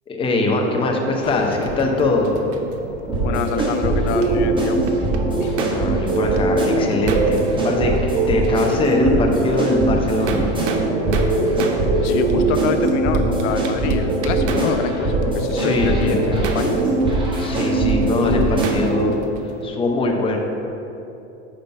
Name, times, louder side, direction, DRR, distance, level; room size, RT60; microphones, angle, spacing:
voice 1, 0.1-2.3 5.6-7.4 7.6-7.9 8.3-10.5 15.5-16.2 17.4-19.1 19.6-20.4, left 2 dB, 15° left, 1 dB, 0.6 m, -22 dB
sound 1, 1.2-5.6, left 4 dB, 45° left, 0.9 m, -35 dB
sound 2, 1.5-4.3 4.6-5.8 6.1-7.7 8.0-8.1 8.4-9.0 9.3-9.4 10.0-11.8 12.3-12.4 12.9-14.9 15.2-19.6, right 5 dB, 75° right, 0.8 m, -32 dB
sound 3, 3.1-19.1, right 2 dB, 15° right, 1.1 m, -20 dB
voice 2, 3.2-5.0 5.4-5.5 12.0-16.8 18.2-18.6, left 7 dB, 80° left, 8 dB, 0.5 m, -26 dB
5.6 x 5.0 x 4.5 m, 2.9 s
supercardioid pair, 125°, 35 cm